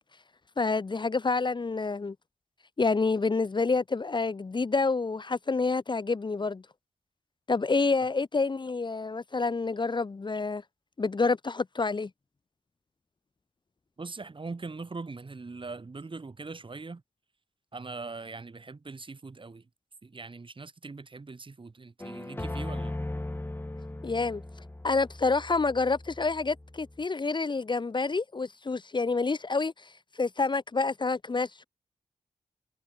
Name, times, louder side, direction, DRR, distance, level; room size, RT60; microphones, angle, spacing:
voice 1, 0.6-2.1 2.8-6.6 7.5-10.6 11.0-12.1 24.0-24.4 24.8-31.6, left 4 dB, 40° left, 1.1 m, -28 dB
voice 2, 14.0-17.0 17.7-19.7 20.0-23.0, right 3 dB, 40° right, 6.3 m, -41 dB
sound 1, 22.0-27.0, left 1 dB, 15° left, 6.2 m, -38 dB
cardioid pair, 50°, 13 cm